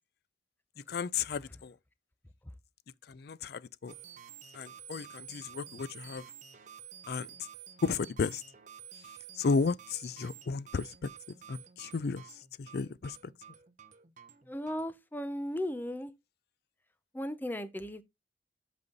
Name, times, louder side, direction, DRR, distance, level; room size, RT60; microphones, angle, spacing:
voice 1, 0.9-1.7 3.1-3.9 4.5-6.2 7.1-7.3 7.8-8.4 9.4-10.9 11.5-12.2 12.6-13.2, left 4 dB, 60° left, 0.4 m, -33 dB
sound 1, 3.9-14.9, right 9 dB, 45° right, 0.9 m, -51 dB
voice 2, 14.5-16.1 17.1-18.0, equal, 10° left, 0.7 m, -36 dB
7.9 x 5.5 x 3.9 m
head